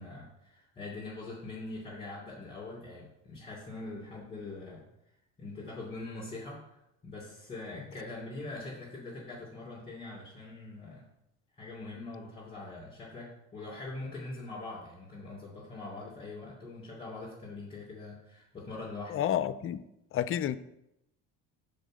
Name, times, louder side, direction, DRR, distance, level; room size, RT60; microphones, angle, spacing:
voice 1, 0.0-4.8 5.4-11.1 11.6-19.3, left 2 dB, 15° left, -8 dB, 3.1 m, -43 dB
voice 2, 19.1-19.8 20.1-20.6, left 10 dB, 40° left, 14 dB, 0.4 m, -30 dB
6.5 x 4.2 x 6.4 m, 0.85 s
cardioid pair, 110°, 36 cm